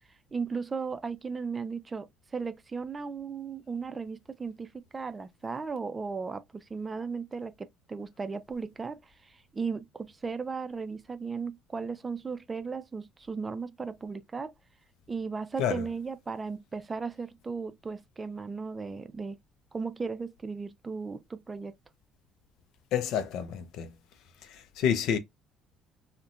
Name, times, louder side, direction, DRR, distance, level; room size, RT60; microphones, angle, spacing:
voice 1, 0.3-14.5 15.1-19.4 19.7-21.8, right 5 dB, 30° right, 0.4 m, -36 dB
voice 2, 22.9-23.9 24.5-25.2, left 8 dB, 65° left, 0.4 m, -29 dB
2.5 x 2.1 x 2.4 m
hypercardioid pair, 55°, 0 cm